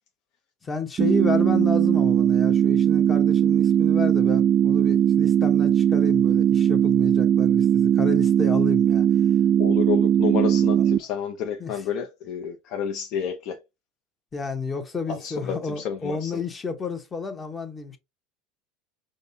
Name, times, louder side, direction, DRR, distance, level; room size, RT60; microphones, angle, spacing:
voice 1, 0.6-9.1 10.8-10.9 11.6-11.7 14.3-18.0, left 4 dB, 20° left, 0.8 m, -31 dB
sound 1, 1.0-11.0, right 9 dB, 40° right, 0.3 m, -19 dB
voice 2, 9.6-13.6 15.1-16.4, left 8 dB, 55° left, 0.6 m, -30 dB
5.2 x 2.1 x 2.6 m
supercardioid pair, 115°, 0 cm